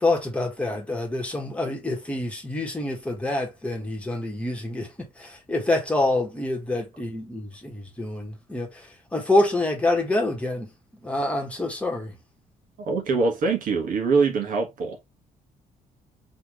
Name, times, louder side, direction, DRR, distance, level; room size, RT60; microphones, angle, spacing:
voice 1, 0.0-10.7 11.0-12.1, left 2 dB, 10° left, 1.4 m, -26 dB
voice 2, 12.8-15.0, right 4 dB, 60° right, 1.8 m, -23 dB
4.2 x 3.6 x 3.2 m
cardioid pair, 160°, 15 cm